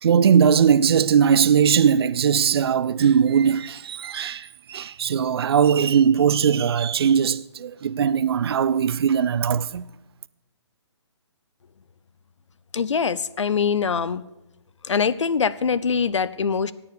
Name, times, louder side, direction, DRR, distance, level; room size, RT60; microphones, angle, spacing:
voice 1, 0.0-9.9, right 7 dB, 55° right, 0.5 m, -20 dB
voice 2, 12.7-14.2 14.8-16.7, left 6 dB, 80° left, 0.7 m, -23 dB
17.5 x 7.1 x 6.7 m
hypercardioid pair, 150°, 15 cm